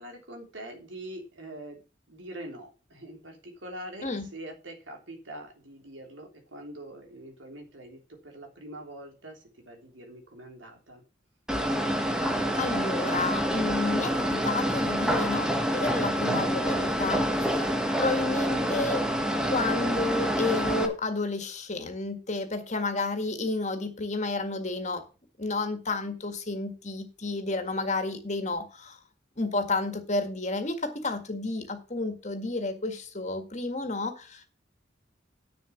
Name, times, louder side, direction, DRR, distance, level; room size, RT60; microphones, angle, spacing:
voice 1, 0.0-1.8 2.1-11.0, right 1 dB, 85° right, 2 dB, 3.3 m, -44 dB
sound 1, 11.5-20.9, equal, 5° right, 1.3 m, -27 dB
voice 2, 12.6-19.0 19.3-25.0 25.4-29.0 29.4-34.5, left 3 dB, 40° left, 6 dB, 1.9 m, -31 dB
9.2 x 6.9 x 6.1 m, 0.34 s
head